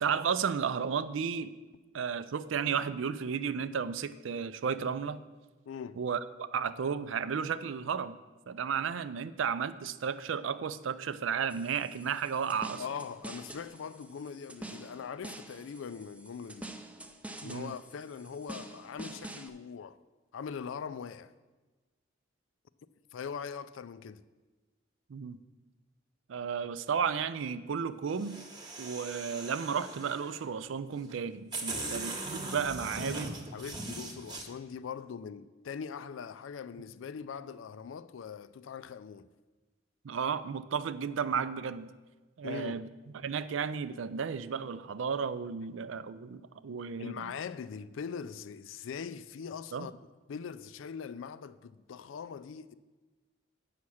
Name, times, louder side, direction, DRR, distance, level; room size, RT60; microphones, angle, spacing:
voice 1, 0.0-1.5 1.9-5.2 6.0-8.2 8.5-12.8 17.4-17.8 25.1-25.4 26.3-28.4 28.8-33.3 40.0-41.9 42.4-42.9 43.1-47.3 49.7-49.9, right 6 dB, 80° right, 0.4 m, -33 dB
voice 2, 5.7-6.0 12.8-16.7 17.4-20.0 20.3-21.3 23.1-24.2 31.7-31.9 33.5-39.3 42.4-42.8 47.0-49.9 50.3-52.8, left 6 dB, 85° left, 0.4 m, -41 dB
sound 1, 11.5-19.5, right 2 dB, 5° right, 0.5 m, -47 dB
sound 2, 28.1-30.4 31.1-31.2 31.5-34.4, right 2 dB, 20° right, 1.0 m, -40 dB
8.4 x 5.7 x 6.3 m
head